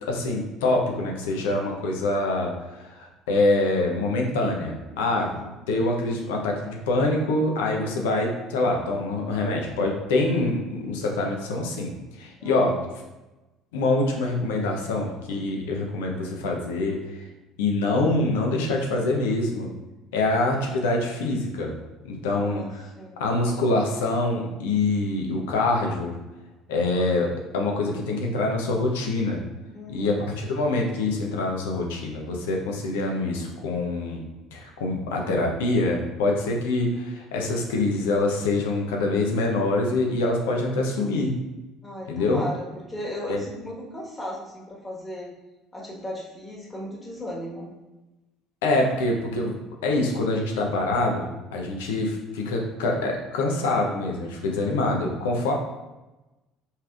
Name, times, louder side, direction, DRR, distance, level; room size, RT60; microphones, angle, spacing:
voice 1, 0.0-5.3 5.7-12.8 13.7-17.3 17.6-19.7 20.1-21.7 22.0-22.8 23.2-26.2 26.7-29.4 29.9-34.2 34.5-41.3 42.1-42.4 43.3-43.4 48.6-49.6 49.8-55.5, left 2 dB, 70° left, 0 dB, 0.8 m, -25 dB
voice 2, 4.9-5.5 12.4-12.8 20.2-20.4 22.4-23.2 29.7-30.3 41.8-45.3 45.7-47.7, left 1 dB, 20° left, -3 dB, 1.5 m, -36 dB
5.5 x 3.5 x 2.5 m, 1.1 s
figure-of-eight pair, 60°, 0 cm